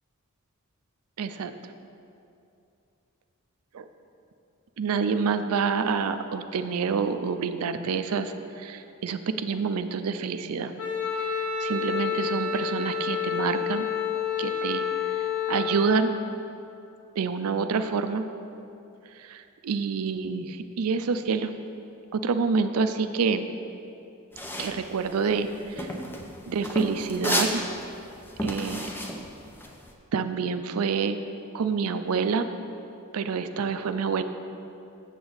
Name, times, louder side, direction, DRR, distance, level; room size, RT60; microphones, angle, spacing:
voice 1, 1.2-1.5 3.7-3.8 4.8-10.7 11.6-13.9 14.4-14.8 15.1-16.1 17.2-18.2 19.2-21.5 22.1-23.5 24.6-25.5 25.8-25.9 26.5-27.6 28.4-28.9 30.1-31.2 31.5-32.5 33.1-34.2, right 5 dB, 85° right, 10 dB, 0.4 m, -27 dB
Wind instrument woodwind instrument, 10.8-15.9, left 7 dB, 75° left, 1.0 m, -29 dB
sound 1, 24.3-29.9, equal, 10° left, 0.6 m, -31 dB
7.7 x 7.2 x 4.0 m, 2.7 s
head